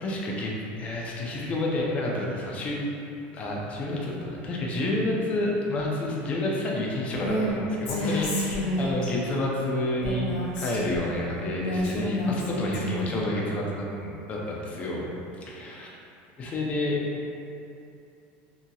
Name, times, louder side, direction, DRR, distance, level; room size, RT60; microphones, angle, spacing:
voice 1, 0.0-2.8 3.3-10.3 10.6-15.1 15.5-16.0 16.4-17.0, left 1 dB, 25° left, -3 dB, 0.4 m, -29 dB
Female speech woman speaking, 7.1-7.5 7.9-9.1 10.0-11.1 11.6-13.2, left 1 dB, 75° left, 0.7 m, -29 dB
2.8 x 2.7 x 2.3 m, 2.6 s
supercardioid pair, 150°, 5 cm